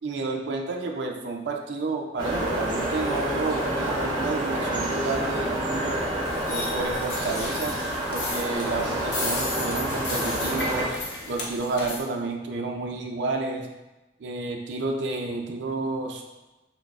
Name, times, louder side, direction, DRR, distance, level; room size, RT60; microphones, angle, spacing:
voice 1, 0.0-6.1 6.5-7.8 8.1-11.0 11.3-13.7 14.2-16.2, right 3 dB, 80° right, 2 dB, 0.4 m, -30 dB
sound 1, 2.2-10.9, right 1 dB, 25° right, 0.9 m, -28 dB
sound 2, 6.3-12.0, left 3 dB, 75° left, 0.6 m, -34 dB
5.9 x 2.0 x 2.4 m, 1.1 s
head